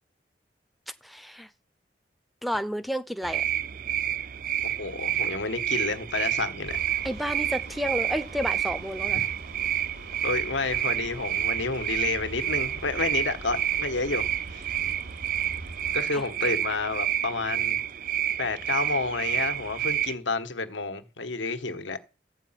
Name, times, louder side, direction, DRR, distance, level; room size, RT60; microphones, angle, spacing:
voice 1, 1.0-1.5 2.4-3.4 7.0-9.3 16.1-16.3, equal, ahead, 0.6 m, -31 dB
sound 1, 3.2-20.1, right 12 dB, 50° right, 0.5 m, -29 dB
voice 2, 4.6-6.8 10.2-14.2 14.5-14.7 15.9-17.8 18.4-22.1, left 3 dB, 90° left, 1.4 m, -30 dB
sound 2, 6.6-16.0, right 2 dB, 75° right, 2.4 m, -43 dB
14.0 x 8.7 x 5.8 m
head